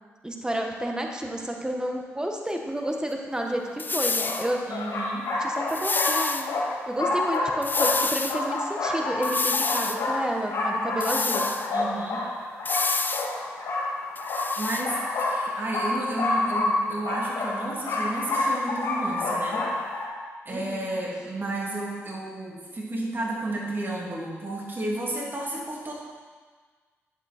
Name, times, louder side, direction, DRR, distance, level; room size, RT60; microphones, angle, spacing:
voice 1, 0.2-4.6 5.4-6.6 6.9-11.4 20.5-20.9, right 1 dB, 15° right, 2 dB, 1.8 m, -30 dB
sound 1, 3.4-3.5 4.2-20.0, left 2 dB, 80° left, 2.7 m, -28 dB
sound 2, 3.8-4.5 5.7-6.5 7.6-8.4 9.2-10.0 11.0-11.7 12.7-13.3 14.2-14.9, left 4 dB, 35° left, 0.6 m, -28 dB
voice 2, 4.7-5.3 11.7-12.3 14.6-19.6 20.4-25.9, right 1 dB, 40° right, -3 dB, 3.1 m, -32 dB
10.5 x 7.7 x 4.6 m, 1.5 s
supercardioid pair, 50°, 6 cm